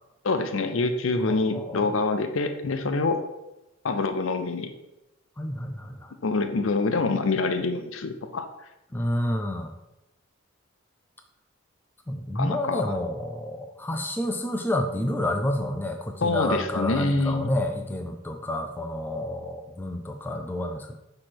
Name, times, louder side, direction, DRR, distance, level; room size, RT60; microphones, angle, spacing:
voice 1, 0.2-3.2 3.8-4.7 6.2-8.5 12.3-12.8 16.2-17.5, left 3 dB, 70° left, 8 dB, 0.6 m, -26 dB
voice 2, 1.3-1.9 5.4-6.1 8.9-9.7 12.1-21.0, left 1 dB, 10° left, 4 dB, 0.4 m, -29 dB
6.2 x 3.3 x 5.9 m, 0.95 s
head